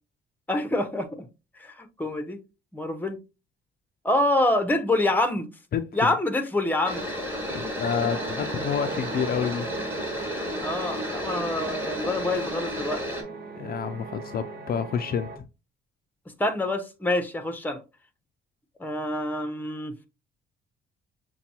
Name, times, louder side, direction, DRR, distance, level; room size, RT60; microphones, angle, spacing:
voice 1, 0.5-1.2 1.6-2.4 2.7-3.2 4.0-5.5 5.9-7.1 10.6-13.0 16.4-17.8 18.8-19.9, left 1 dB, 10° left, 0.9 m, -26 dB
voice 2, 5.7-6.1 7.5-9.7 13.6-15.4, left 7 dB, 50° left, 0.4 m, -29 dB
sound 1, 6.9-13.2, left 1 dB, 10° right, 2.0 m, -32 dB
sound 2, 7.8-15.4, right 5 dB, 50° right, 0.7 m, -38 dB
6.7 x 2.3 x 2.8 m
cardioid pair, 90°, 20 cm